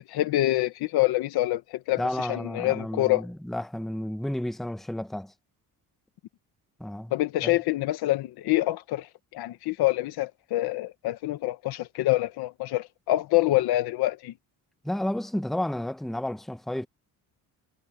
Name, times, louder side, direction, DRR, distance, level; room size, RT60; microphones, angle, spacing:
voice 1, 0.1-3.3 7.1-14.3, left 16 dB, 85° left, 1.3 m, -26 dB
voice 2, 2.0-5.3 6.8-7.1 7.4-7.6 14.8-16.9, left 1 dB, ahead, 1.0 m, -31 dB
cardioid pair, 150°, 37 cm